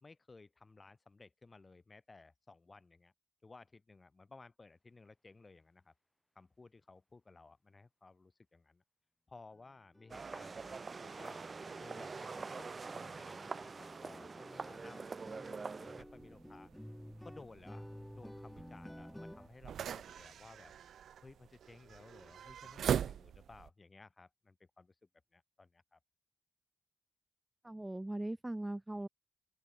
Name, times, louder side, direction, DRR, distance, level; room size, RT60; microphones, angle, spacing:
voice 1, 0.0-3.1 3.4-5.9 6.3-8.8 9.3-11.4 11.8-16.7 17.2-17.9 18.1-20.7 21.2-24.9 25.3-26.0, left 3 dB, 35° left, 2.9 m, -58 dB
sound 1, 9.5-9.6 9.9-10.1 10.4-19.5, equal, 5° left, 4.4 m, -53 dB
sound 2, 10.1-16.0, right 4 dB, 45° right, 1.3 m, -45 dB
sound 3, 16.0-23.7, right 9 dB, 80° right, 0.3 m, -42 dB
voice 2, 27.6-29.1, right 1 dB, 15° right, 0.7 m, -40 dB
cardioid pair, 65°, 0 cm